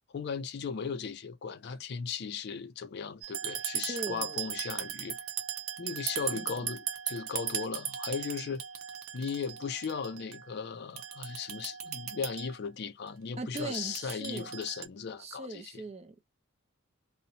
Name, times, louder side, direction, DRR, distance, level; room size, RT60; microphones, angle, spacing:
voice 1, 0.1-5.2 5.8-8.6 9.1-15.8, left 6 dB, 50° left, 0.4 m, -37 dB
sound 1, 3.2-10.5 11.0-12.6 13.6-14.9, right 9 dB, 75° right, 0.6 m, -38 dB
voice 2, 3.9-4.5 6.3-6.6 13.4-14.5 15.2-16.2, right 2 dB, 30° right, 0.4 m, -40 dB
2.6 x 2.1 x 2.7 m
head